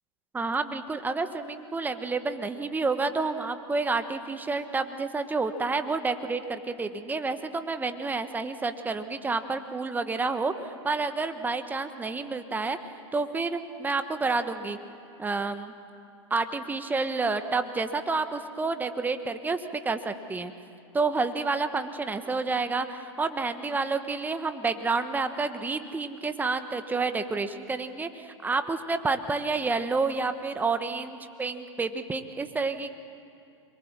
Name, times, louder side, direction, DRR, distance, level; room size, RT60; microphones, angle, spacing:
voice 1, 0.3-12.8 13.1-14.8 15.2-15.7 16.3-20.5 20.9-32.9, right 3 dB, 10° right, 9 dB, 1.2 m, -29 dB
25.0 x 22.0 x 7.4 m, 2.5 s
hypercardioid pair, 120°, 16 cm